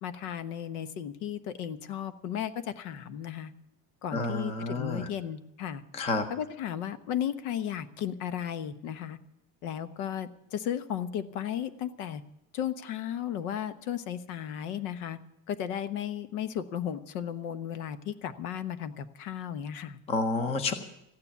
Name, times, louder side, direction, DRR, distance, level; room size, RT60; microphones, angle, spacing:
voice 1, 0.0-3.5 4.0-5.8 6.3-9.2 9.6-12.2 12.5-15.2 15.5-20.0, left 9 dB, 70° left, 12 dB, 1.2 m, -35 dB
voice 2, 4.1-5.1 5.9-6.2 20.1-20.7, left 3 dB, 15° left, 9 dB, 0.6 m, -29 dB
14.5 x 9.8 x 8.4 m, 0.82 s
cardioid pair, 170°, 46 cm